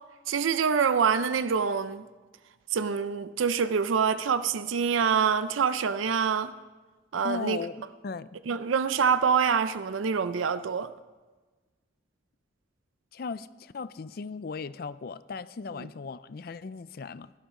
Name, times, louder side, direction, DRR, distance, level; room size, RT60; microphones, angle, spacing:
voice 1, 0.3-2.1 2.7-6.5 7.1-7.6 8.5-10.9, right 6 dB, 85° right, 0.5 m, -25 dB
voice 2, 7.2-8.3 13.1-17.3, left 4 dB, 50° left, 0.4 m, -37 dB
16.5 x 13.0 x 3.7 m
head